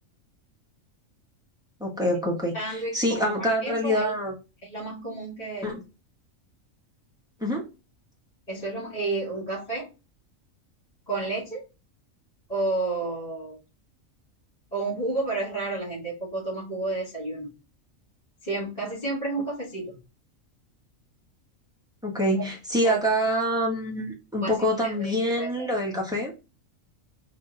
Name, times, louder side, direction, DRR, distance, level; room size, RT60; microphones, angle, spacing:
voice 1, 1.8-4.3 5.6-5.8 7.4-7.6 22.0-26.3, equal, 5° right, 1.2 m, -26 dB
voice 2, 2.5-4.1 4.6-5.8 8.5-9.9 11.1-11.6 12.5-13.6 14.7-17.5 18.4-20.0 22.8-23.0 24.4-25.7, right 2 dB, 30° left, 2.1 m, -31 dB
4.0 x 2.9 x 3.8 m
omnidirectional pair, 1.4 m